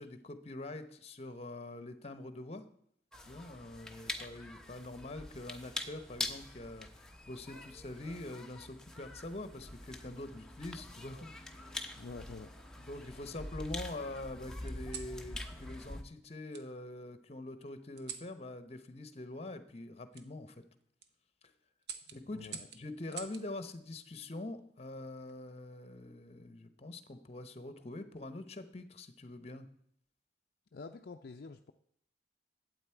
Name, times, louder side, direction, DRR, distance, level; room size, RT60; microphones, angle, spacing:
voice 1, 0.0-2.6 3.3-11.8 12.9-20.6 22.1-29.7, left 2 dB, 35° left, 10 dB, 0.9 m, -44 dB
sound 1, 3.1-16.0, left 2 dB, 5° left, 0.9 m, -45 dB
sound 2, 7.3-8.4 9.5-9.9 11.1-11.9 12.5-13.4 14.7-15.2 16.5-16.7 18.0-18.3 20.1-20.3 20.8-21.1 21.8-23.5 25.0-25.4, right 7 dB, 65° right, 0.9 m, -49 dB
voice 2, 12.0-12.6 22.1-22.7 30.7-31.7, left 3 dB, 60° left, 5 dB, 0.5 m, -48 dB
12.0 x 8.4 x 4.5 m, 0.69 s
head